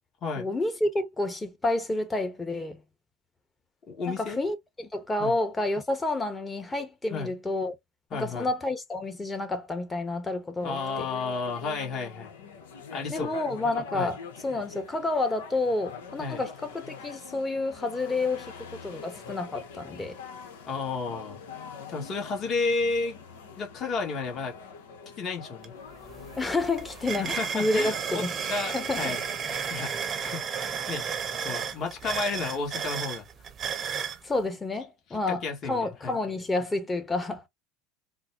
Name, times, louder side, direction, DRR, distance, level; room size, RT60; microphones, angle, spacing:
voice 1, 0.4-2.8 4.2-7.7 8.1-11.1 13.1-20.2 26.4-28.3 28.7-29.2 29.4-29.6 34.2-37.5, left 2 dB, 15° left, 1.1 m, -29 dB
voice 2, 3.9-4.4 5.2-5.3 7.1-7.3 8.1-8.5 10.6-12.3 12.9-13.3 13.9-14.1 16.2-16.4 20.7-21.4 21.9-23.2 23.5-24.5 25.2-25.7 27.2-28.2 28.5-29.2 29.7-31.0 31.4-33.3 35.3-36.2, left 4 dB, 40° left, 1.7 m, -32 dB
sound 1, 10.6-29.5, left 5 dB, 80° left, 1.0 m, -44 dB
sound 2, 25.6-25.7 26.0-34.2, right 7 dB, 35° right, 0.8 m, -33 dB
3.9 x 2.2 x 2.8 m
hypercardioid pair, 95°, 0 cm